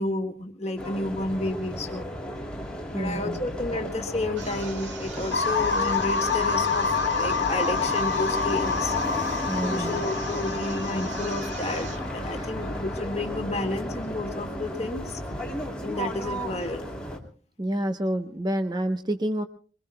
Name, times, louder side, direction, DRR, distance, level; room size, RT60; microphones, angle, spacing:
voice 1, 0.0-2.1 2.9-9.0 9.6-15.2 15.8-16.9, left 2 dB, 35° left, 4 dB, 1.8 m, -31 dB
sound 1, 0.8-17.2, equal, 5° left, 2.6 m, -34 dB
voice 2, 2.9-3.5 9.5-10.0 12.2-12.5 17.6-19.4, right 1 dB, 25° right, 7 dB, 0.8 m, -29 dB
sound 2, 4.3-12.1, right 5 dB, 85° right, 2.2 m, -42 dB
sound 3, 5.3-13.2, left 5 dB, 70° left, 1.5 m, -28 dB
26.5 x 22.5 x 2.2 m, 0.41 s
head